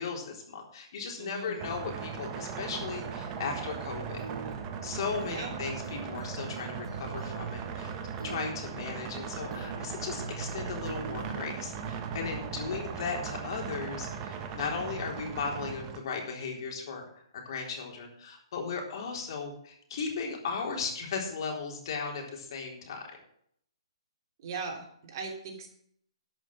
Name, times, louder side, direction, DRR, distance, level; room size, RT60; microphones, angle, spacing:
voice 1, 0.0-4.2 4.8-7.9 8.2-23.0, left 5 dB, 55° left, 1 dB, 3.9 m, -36 dB
voice 2, 1.2-1.6 5.2-5.5 24.4-25.7, right 4 dB, 45° right, 2 dB, 3.1 m, -39 dB
sound 1, 1.6-16.0, right 6 dB, 25° right, 1.4 m, -38 dB
sound 2, 2.7-3.5 4.2-5.5 5.8-8.5 9.5-9.9 10.2-11.5 11.8-12.2, right 5 dB, 85° right, 1.0 m, -43 dB
12.0 x 6.3 x 7.6 m, 0.65 s
hypercardioid pair, 145°, 3 cm